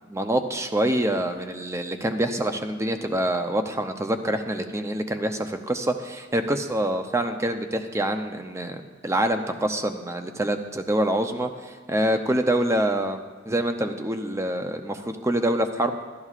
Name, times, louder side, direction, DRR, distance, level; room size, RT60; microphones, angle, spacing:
voice 1, 0.1-13.2 13.5-16.0, right 1 dB, 15° right, 7 dB, 0.5 m, -26 dB
12.5 x 12.0 x 2.4 m, 1.4 s
head